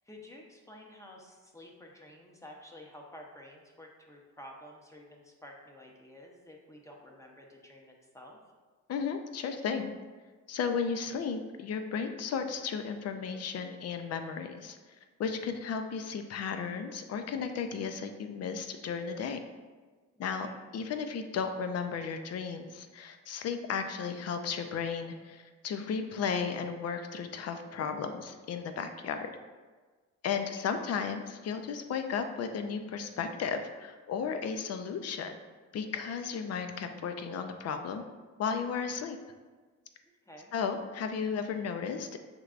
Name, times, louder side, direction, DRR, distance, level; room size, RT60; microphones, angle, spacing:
voice 1, 0.1-8.4 20.2-20.5 30.4-30.9 40.3-40.5, left 1 dB, 10° left, 0 dB, 0.8 m, -51 dB
voice 2, 8.9-9.9 10.5-14.8 15.2-19.4 20.2-29.3 30.2-35.4 35.7-38.0 38.4-39.2 40.5-42.2, left 6 dB, 55° left, 7 dB, 0.5 m, -34 dB
6.5 x 3.2 x 2.4 m, 1.4 s
cardioid pair, 90°, 30 cm